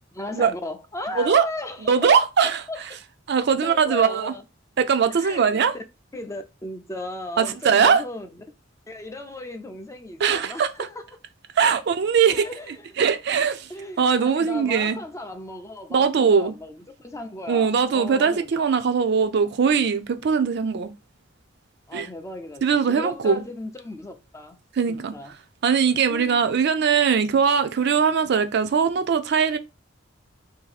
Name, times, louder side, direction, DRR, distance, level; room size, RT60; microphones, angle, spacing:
voice 1, 0.1-2.2 2.4-2.8 3.6-4.4 5.1-5.8 6.1-8.4 8.9-11.1 12.2-13.0 13.7-18.7 21.9-24.6 24.9-25.3 26.1-26.6, left 2 dB, 15° left, 0.4 m, -36 dB
voice 2, 1.2-1.5 1.9-2.6 3.3-4.3 4.8-5.7 7.4-8.0 10.2-10.7 11.6-13.7 14.0-15.0 15.9-16.5 17.5-20.9 21.9-22.1 22.6-23.4 24.8-25.1 25.6-29.6, right 6 dB, 60° right, 0.4 m, -21 dB
2.7 x 2.6 x 4.0 m
head